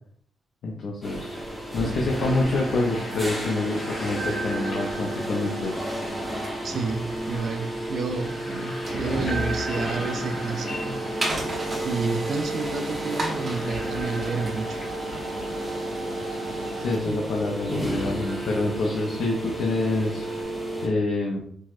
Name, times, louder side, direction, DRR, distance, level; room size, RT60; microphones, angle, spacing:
voice 1, 0.6-1.3 1.7-5.7 16.8-20.3 20.8-21.4, left 2 dB, 70° left, -1 dB, 0.5 m, -26 dB
sound 1, 1.0-20.9, right 1 dB, 10° left, 0.7 m, -33 dB
sound 2, 1.1-20.4, equal, 40° left, 0.9 m, -40 dB
sound 3, 2.1-18.9, right 1 dB, 25° right, 0.8 m, -36 dB
voice 2, 6.6-11.0 11.8-14.8 17.1-17.2, right 4 dB, 50° right, 6 dB, 0.3 m, -30 dB
4.5 x 2.0 x 2.4 m, 0.62 s
wide cardioid pair, 165°, 0 cm